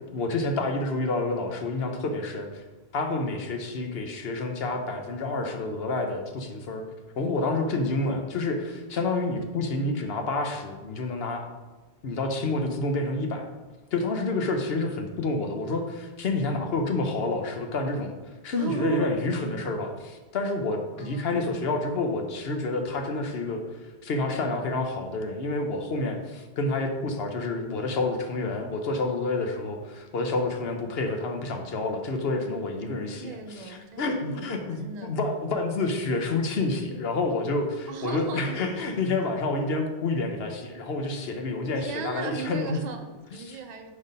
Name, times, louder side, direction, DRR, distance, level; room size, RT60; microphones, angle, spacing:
voice 1, 0.1-2.6 2.9-6.8 7.2-11.5 12.0-13.5 13.9-18.1 18.4-42.8 43.4-43.6, left 2 dB, 70° left, 4 dB, 1.0 m, -29 dB
voice 2, 18.6-19.2 20.9-21.7 32.8-35.2 37.9-38.6 41.8-43.9, right 6 dB, 45° right, 5 dB, 0.7 m, -37 dB
5.4 x 4.1 x 5.2 m, 1.2 s
omnidirectional pair, 1.1 m